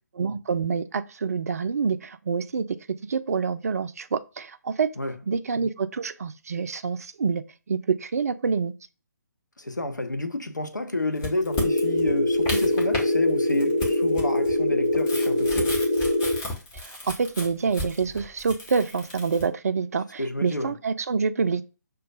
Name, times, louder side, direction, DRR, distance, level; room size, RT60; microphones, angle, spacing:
voice 1, 0.2-2.8 3.0-4.9 5.3-7.4 7.7-8.7 16.7-21.6, right 5 dB, 55° right, 0.4 m, -27 dB
voice 2, 9.6-15.8 20.2-20.8, left 2 dB, 80° left, 0.6 m, -30 dB
sound 1, 11.2-13.1 13.4-19.4, left 2 dB, 20° left, 1.0 m, -34 dB
sound 2, 11.5-16.4, left 1 dB, 65° left, 1.5 m, -23 dB
6.1 x 2.3 x 2.3 m
figure-of-eight pair, 135°, 10 cm